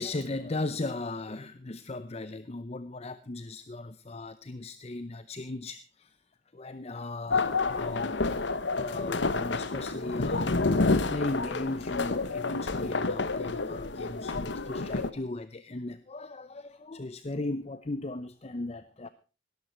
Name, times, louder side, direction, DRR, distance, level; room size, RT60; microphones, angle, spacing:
voice 1, 0.0-6.2 6.5-8.2 8.5-19.1, left 2 dB, 35° left, 0.7 m, -37 dB
sound 1, 7.3-15.1, left 3 dB, 65° left, 1.0 m, -29 dB
18.0 x 12.5 x 4.4 m
head